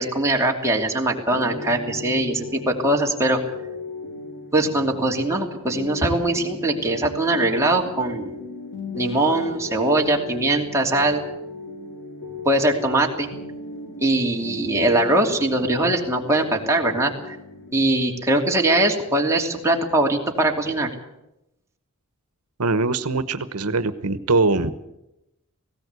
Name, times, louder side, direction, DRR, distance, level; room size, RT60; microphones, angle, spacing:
voice 1, 0.0-3.4 4.5-8.4 8.9-11.2 12.4-13.3 14.0-17.4 17.7-20.9, right 1 dB, 15° right, 0 dB, 2.8 m, -21 dB
sound 1, 1.3-20.9, left 2 dB, 55° left, 4.0 m, -37 dB
voice 2, 22.6-24.7, right 3 dB, 85° right, 12 dB, 1.1 m, -22 dB
18.5 x 17.0 x 8.2 m, 0.87 s
head